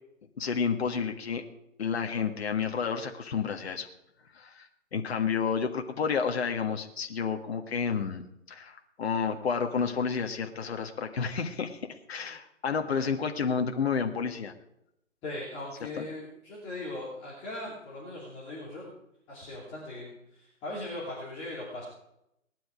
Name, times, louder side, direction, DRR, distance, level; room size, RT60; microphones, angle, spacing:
voice 1, 0.4-1.4 1.8-3.9 4.3-8.2 8.5-14.5 16.0-16.1, left 6 dB, 50° left, 4 dB, 1.6 m, -30 dB
voice 2, 15.2-18.9 19.3-21.8, left 2 dB, 15° left, -7 dB, 2.7 m, -39 dB
19.0 x 11.5 x 5.0 m, 0.80 s
hypercardioid pair, 170°, 40 cm